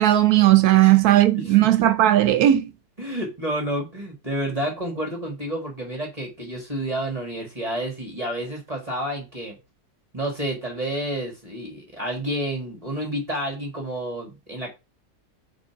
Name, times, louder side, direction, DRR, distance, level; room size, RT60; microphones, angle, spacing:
voice 1, 0.0-2.7, right 13 dB, 80° right, 1.1 m, -16 dB
voice 2, 1.3-1.7 3.0-9.6 10.1-14.7, right 1 dB, 25° right, 1.8 m, -30 dB
5.0 x 4.3 x 5.8 m
omnidirectional pair, 1.6 m